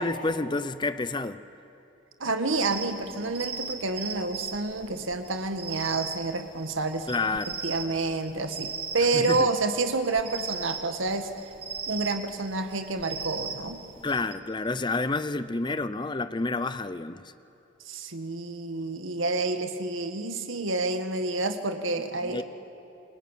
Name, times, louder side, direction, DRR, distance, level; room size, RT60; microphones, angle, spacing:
voice 1, 0.0-1.4 7.1-7.6 9.0-9.5 14.0-17.3 22.2-22.4, left 3 dB, 25° left, 13 dB, 0.6 m, -29 dB
voice 2, 2.2-7.1 7.6-11.3 11.9-13.9 17.9-22.4, right 3 dB, 80° right, 7 dB, 1.9 m, -29 dB
sound 1, 2.5-14.3, right 6 dB, 30° right, 1.9 m, -38 dB
27.5 x 22.5 x 9.2 m, 2.7 s
head